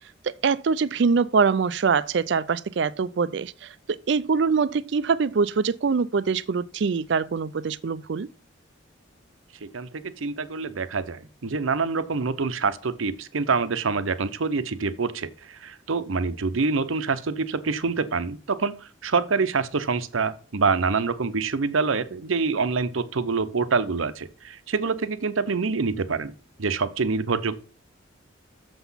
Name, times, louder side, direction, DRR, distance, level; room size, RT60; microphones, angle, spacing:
voice 1, 0.2-8.3, right 5 dB, 60° right, 0.4 m, -24 dB
voice 2, 9.6-26.3 26.6-27.5, right 4 dB, 85° right, 0.7 m, -26 dB
6.9 x 6.0 x 5.6 m
head